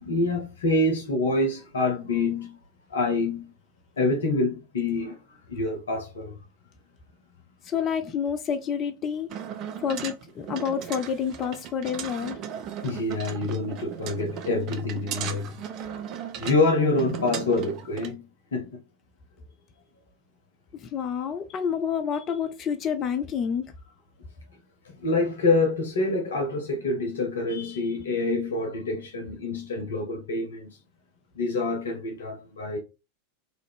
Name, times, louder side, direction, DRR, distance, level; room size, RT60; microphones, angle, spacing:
voice 1, 0.0-2.6 2.9-3.5 4.0-5.2 5.5-6.3 12.8-15.5 16.4-18.2 18.5-18.8 24.8-30.7 31.3-32.8, left 2 dB, 65° left, 0.6 m, -26 dB
voice 2, 7.6-9.3 9.8-12.4 20.7-23.7, left 7 dB, 30° left, 0.3 m, -28 dB
sound 1, 9.3-18.1, right 8 dB, 35° right, 0.4 m, -37 dB
2.6 x 2.5 x 3.4 m
figure-of-eight pair, 90°, 0 cm